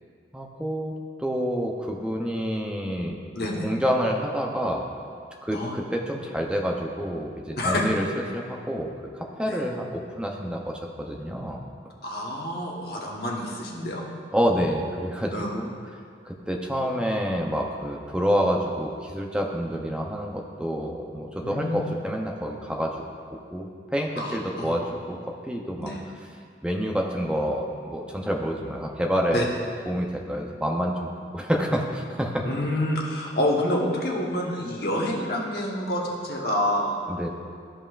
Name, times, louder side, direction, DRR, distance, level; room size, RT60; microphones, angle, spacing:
voice 1, 0.3-3.2 3.6-4.8 5.4-8.0 8.3-8.9 9.1-10.8 11.1-11.6 14.3-15.8 16.2-23.0 23.3-25.9 26.6-29.5 29.9-32.5 37.1-37.3, equal, 5° right, 0 dB, 0.6 m, -28 dB
voice 2, 3.3-3.7 5.5-5.8 7.6-7.8 9.5-9.6 12.0-14.0 15.3-15.5 21.4-21.8 24.2-24.8 25.8-26.0 29.3-29.4 32.4-37.0, left 1 dB, 55° left, -2 dB, 1.1 m, -28 dB
13.5 x 5.3 x 2.4 m, 2.2 s
head